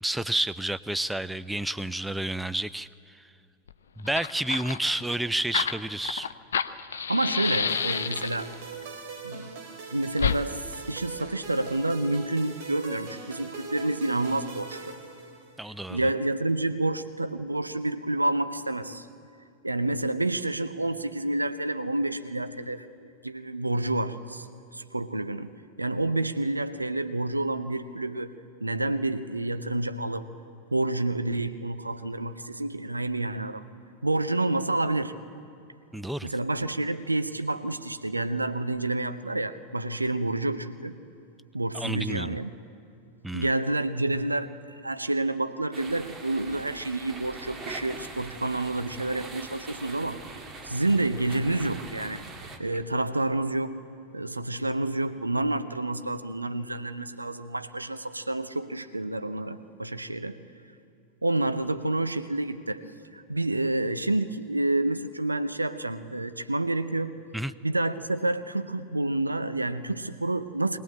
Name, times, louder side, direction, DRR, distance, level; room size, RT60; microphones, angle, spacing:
voice 1, 0.0-3.2 4.0-6.3 15.6-16.1 35.9-36.3 41.7-42.4 43.2-43.5 67.3-67.5, right 1 dB, 5° right, 14 dB, 0.5 m, -30 dB
Fire, 3.7-3.8 4.0-8.5 10.2-10.4, left 7 dB, 65° left, 0.6 m, -29 dB
voice 2, 7.1-8.5 9.2-9.5 9.9-10.6 10.9-14.9 15.9-19.1 19.6-24.5 24.7-25.5 25.8-28.3 28.6-30.3 30.7-33.6 34.0-35.1 36.2-40.9 41.5-42.5 43.3-44.5 44.8-50.2 50.6-52.2 52.6-53.7 54.1-60.4 61.2-62.8 63.1-67.2 67.6-70.8, right 2 dB, 85° right, 10 dB, 0.8 m, -29 dB
sound 1, 7.4-15.7, right 4 dB, 50° right, 3.0 m, -41 dB
sound 2, 45.7-52.6, right 3 dB, 25° right, 2.0 m, -42 dB
21.5 x 18.0 x 8.7 m, 2.6 s
figure-of-eight pair, 90°, 0 cm